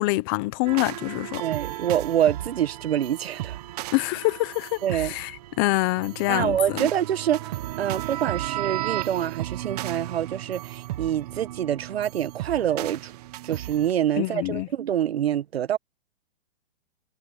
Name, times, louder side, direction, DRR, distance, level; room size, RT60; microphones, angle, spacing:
voice 1, 0.0-1.4 3.9-4.7 5.1-5.3 5.6-6.6 14.2-14.7, left 22 dB, 20° left, 0.7 m, -25 dB
sound 1, 0.6-13.9, right 15 dB, 40° right, 1.3 m, -34 dB
voice 2, 1.4-3.6 4.8-5.1 6.3-7.5 7.8-13.1 13.4-15.8, right 10 dB, 80° right, 1.1 m, -26 dB
hypercardioid pair, 160°, 31 cm